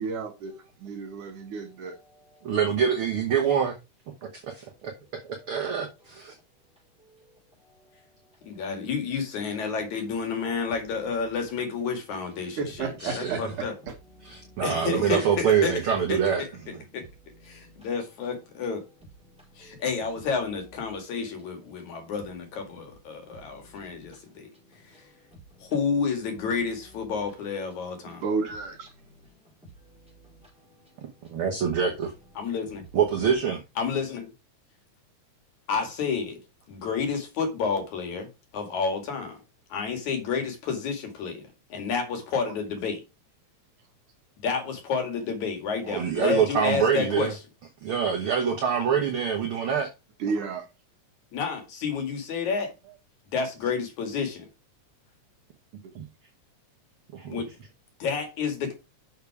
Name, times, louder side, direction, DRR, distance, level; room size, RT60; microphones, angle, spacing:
voice 1, 0.0-2.0 12.6-14.0 28.1-28.9 50.2-50.7, right 5 dB, 85° right, 3.5 m, -32 dB
voice 2, 1.0-2.7 4.4-9.0 9.9-10.1 10.8-12.6 14.0-15.4 16.2-20.0 20.3-25.7 26.1-26.3 26.6-28.3 28.9-31.7 32.2-33.3, right 1 dB, ahead, 4.4 m, -56 dB
voice 3, 2.4-3.8 4.5-4.9 5.2-6.3 13.0-13.4 14.2-16.4 31.3-32.1 32.9-33.6 45.9-47.3 47.8-49.9 57.1-57.4, right 7 dB, 55° right, 1.8 m, -25 dB
voice 4, 8.5-13.7 14.6-15.8 16.1-16.5 16.9-17.0 17.5-18.8 19.6-24.5 25.6-28.2 32.4-32.8 33.8-34.3 35.7-36.4 36.7-38.3 38.5-39.4 39.7-41.4 41.7-43.0 44.4-47.4 51.3-52.7 53.3-54.4 57.3-57.5 58.0-58.8, left 5 dB, 75° left, 3.5 m, -30 dB
7.0 x 6.6 x 4.8 m
omnidirectional pair, 3.4 m